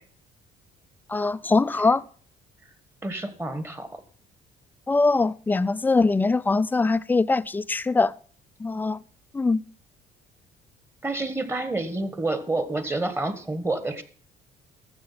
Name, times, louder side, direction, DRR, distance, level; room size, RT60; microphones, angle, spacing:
voice 1, 1.1-2.0 4.9-8.1 8.6-9.0 9.3-9.6, left 3 dB, 10° left, 0.4 m, -22 dB
voice 2, 3.0-4.0 11.0-14.0, right 2 dB, 15° right, 1.5 m, -28 dB
14.0 x 7.1 x 5.6 m
cardioid pair, 110°, 17 cm